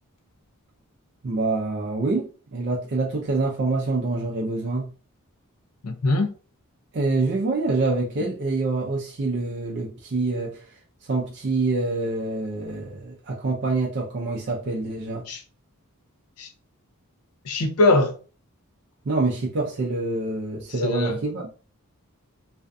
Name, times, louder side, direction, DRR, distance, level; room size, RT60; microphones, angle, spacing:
voice 1, 1.2-4.9 6.9-10.6 11.1-15.2 19.1-21.5, right 3 dB, 50° right, 0.4 m, -26 dB
voice 2, 5.8-6.3 15.3-15.4 16.4-16.5 17.5-18.1 20.8-21.2, left 2 dB, 90° left, 0.5 m, -21 dB
2.5 x 2.4 x 2.2 m
head